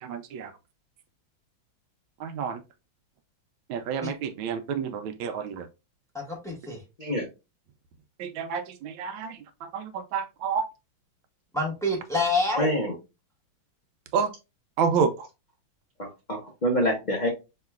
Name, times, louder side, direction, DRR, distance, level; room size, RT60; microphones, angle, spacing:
voice 1, 0.0-0.5 2.2-2.6 3.7-5.7 8.2-9.4 9.7-10.6 14.1-14.3 14.8-15.3, right 6 dB, 75° right, 1.3 m, -29 dB
voice 2, 6.1-6.8 11.5-12.7, left 2 dB, ahead, 1.1 m, -27 dB
voice 3, 12.6-12.9 16.0-17.3, equal, 60° left, 0.4 m, -26 dB
5.5 x 2.9 x 2.3 m
omnidirectional pair, 2.2 m